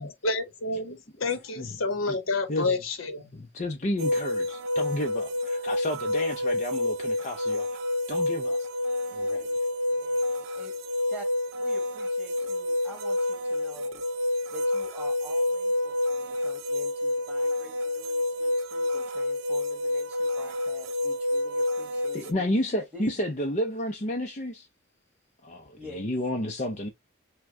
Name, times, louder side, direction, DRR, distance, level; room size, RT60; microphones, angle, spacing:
voice 1, 0.2-3.3, left 3 dB, 70° left, 1.0 m, -29 dB
voice 2, 3.3-7.7 8.1-8.7 9.1-9.5 22.1-24.7 25.4-26.9, left 1 dB, 35° left, 0.6 m, -31 dB
sound 1, 4.0-22.3, left 1 dB, 65° right, 0.6 m, -28 dB
voice 3, 9.9-10.7 11.1-11.3 11.6-14.0 14.5-22.4 22.9-23.2 25.7-26.1, equal, 5° right, 2.0 m, -47 dB
6.1 x 2.3 x 3.2 m
head